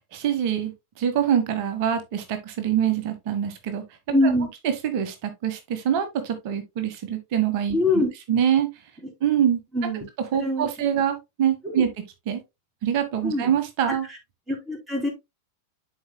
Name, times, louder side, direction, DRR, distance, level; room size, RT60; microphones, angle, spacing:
voice 1, 0.1-0.7 1.0-3.8 4.2-4.3 4.6-7.8 8.3-8.7 9.2-9.6 10.3-11.9 12.3-12.4 12.8-14.1, right 9 dB, 45° right, 1.5 m, -24 dB
voice 2, 4.1-4.5 7.7-8.1 9.7-10.0 10.4-10.7 11.6-11.9 13.2-13.5 13.9-14.0 14.5-15.1, left 1 dB, 10° right, 3.7 m, -23 dB
11.5 x 4.8 x 2.2 m
figure-of-eight pair, 90°, 0 cm